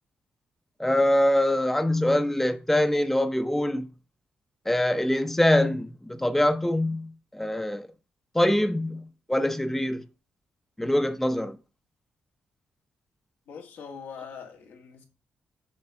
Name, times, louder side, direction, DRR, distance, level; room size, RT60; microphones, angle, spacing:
voice 1, 0.8-3.9 4.7-7.9 8.3-10.0 10.8-11.6, left 1 dB, 5° left, 0.7 m, -24 dB
voice 2, 13.5-15.0, left 6 dB, 80° left, 1.6 m, -42 dB
7.5 x 3.3 x 5.6 m
cardioid pair, 65°, 4 cm